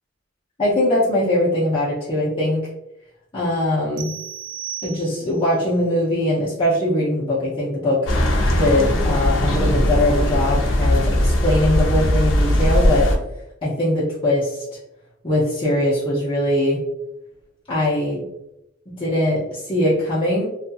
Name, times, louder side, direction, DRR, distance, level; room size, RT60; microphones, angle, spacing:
voice 1, 0.6-2.7 3.3-4.1 4.8-8.1 8.5-13.1 13.6-14.8 15.2-16.8 17.7-18.2 19.0-20.5, left 1 dB, 25° left, -9 dB, 0.7 m, -21 dB
sound 1, 4.0-5.5, right 10 dB, 40° right, 0.3 m, -34 dB
sound 2, 8.1-13.2, left 1 dB, 85° left, 0.6 m, -19 dB
2.6 x 2.4 x 2.6 m, 0.85 s
head